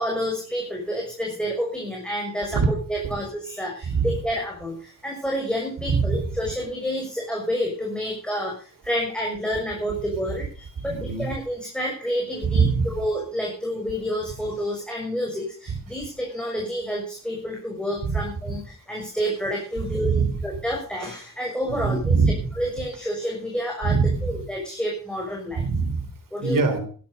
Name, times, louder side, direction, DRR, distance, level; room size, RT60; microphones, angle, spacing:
voice 1, 0.0-22.1 22.6-24.0 24.2-25.6 26.3-26.6, equal, 5° left, -1 dB, 6.4 m, -29 dB
voice 2, 5.9-6.2 10.8-11.3 12.4-12.9 15.7-15.8 18.0-18.5 19.8-20.3 21.7-22.5 23.8-24.4 25.6-26.1 26.4-26.8, right 5 dB, 85° right, 6 dB, 3.8 m, -23 dB
13.0 x 12.5 x 5.5 m, 0.41 s
cardioid pair, 50°, 32 cm